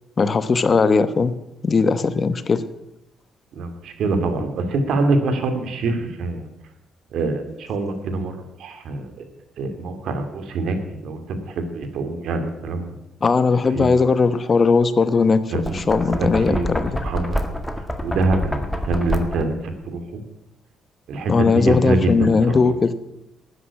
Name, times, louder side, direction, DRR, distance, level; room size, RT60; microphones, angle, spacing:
voice 1, 0.2-1.3 1.6-2.6 13.2-15.4 15.7-17.0 21.3-22.9, left 4 dB, 40° left, 13 dB, 1.0 m, -18 dB
voice 2, 3.6-6.5 7.1-9.1 9.6-10.8 11.0-12.9 13.7-14.0 15.5-15.8 16.0-17.4 18.0-20.0 21.1-22.6, right 3 dB, 75° right, 7 dB, 2.4 m, -25 dB
Knock, 15.5-19.6, equal, 5° left, 1.9 m, -27 dB
12.5 x 9.7 x 8.5 m, 0.89 s
cardioid pair, 90°, 0 cm